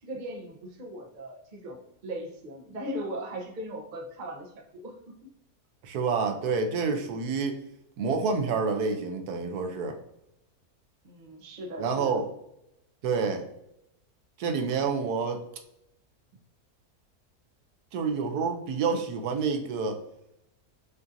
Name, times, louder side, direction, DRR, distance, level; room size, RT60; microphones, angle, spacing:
voice 1, 0.0-4.9 11.0-12.2, right 1 dB, 40° right, 1 dB, 0.8 m, -38 dB
voice 2, 5.8-7.6 8.0-9.9 11.8-12.3 13.0-13.4 14.4-15.4 17.9-20.0, right 5 dB, 80° right, 5 dB, 1.2 m, -28 dB
5.8 x 2.6 x 2.6 m, 0.79 s
omnidirectional pair, 1.6 m